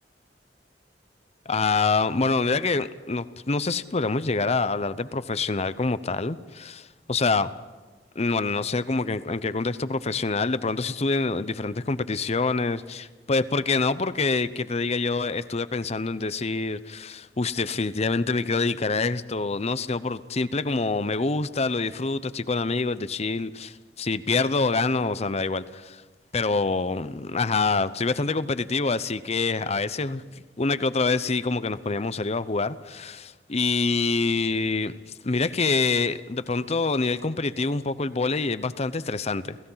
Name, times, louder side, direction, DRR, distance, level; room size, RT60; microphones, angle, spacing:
voice 1, 1.5-7.5 8.1-26.0 26.3-30.2 30.6-35.0 35.2-39.6, left 3 dB, 40° left, 14 dB, 0.8 m, -26 dB
30.0 x 16.5 x 5.7 m, 1.3 s
head